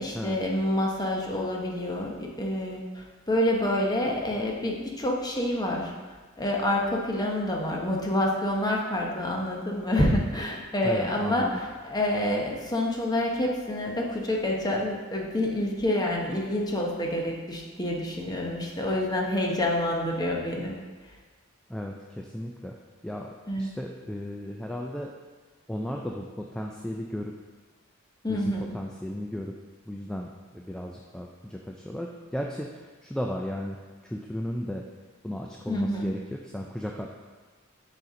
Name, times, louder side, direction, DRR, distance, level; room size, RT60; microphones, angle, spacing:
voice 1, 0.0-5.9 6.4-20.7 23.5-23.7 28.2-28.7 35.7-36.1, left 1 dB, 20° left, -1 dB, 0.9 m, -27 dB
voice 2, 10.8-11.6 21.7-22.8 23.0-25.1 25.7-27.3 28.3-29.5 29.9-34.9 35.2-37.1, equal, 5° left, 0 dB, 0.3 m, -35 dB
6.6 x 4.2 x 4.9 m, 1.4 s
head